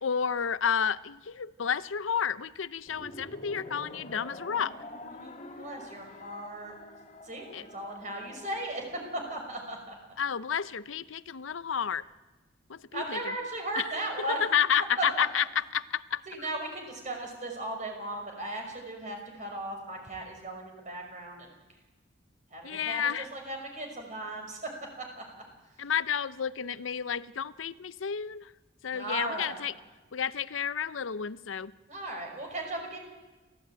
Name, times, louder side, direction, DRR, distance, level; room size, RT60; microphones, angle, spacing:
voice 1, 0.0-4.7 7.5-7.6 10.2-12.0 12.7-13.2 13.8-13.9 14.4-16.2 22.6-23.3 25.8-28.5 28.8-29.7 30.1-31.7, left 7 dB, 85° left, 17 dB, 0.6 m, -30 dB
sound 1, 2.9-9.4, left 1 dB, 35° left, 2.3 m, -47 dB
voice 2, 5.2-6.7 7.2-10.0 12.9-14.4 15.0-15.2 16.3-21.5 22.5-24.7 25.0-25.2 28.9-29.6 31.9-33.0, right 1 dB, 40° right, 2 dB, 5.6 m, -37 dB
29.5 x 15.0 x 8.9 m, 1.2 s
head